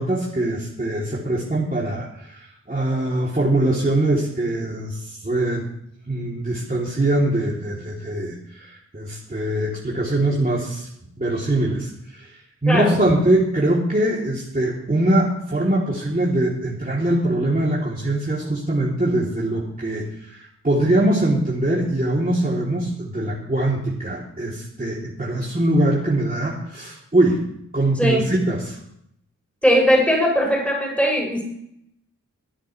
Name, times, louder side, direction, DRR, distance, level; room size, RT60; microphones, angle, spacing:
voice 1, 0.0-2.4 2.7-5.6 6.1-10.9 11.2-12.3 12.6-27.4 27.7-28.8, right 1 dB, 25° right, -6 dB, 3.3 m, -22 dB
voice 2, 12.7-13.0 28.0-28.3 29.6-31.4, equal, 5° left, -3 dB, 7.2 m, -19 dB
22.5 x 10.0 x 3.4 m, 0.73 s
cardioid pair, 45°, 33 cm